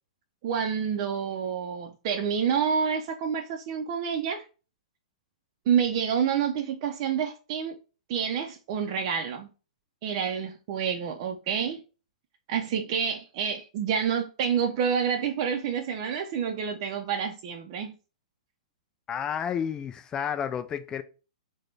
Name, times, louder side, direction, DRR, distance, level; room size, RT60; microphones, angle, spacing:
voice 1, 0.4-4.4 5.7-7.8 8.1-9.5 10.0-11.8 12.5-17.9, right 7 dB, 45° right, 0.5 m, -28 dB
voice 2, 19.1-21.0, left 8 dB, 20° left, 0.3 m, -31 dB
3.9 x 2.2 x 3.2 m
hypercardioid pair, 120°, 4 cm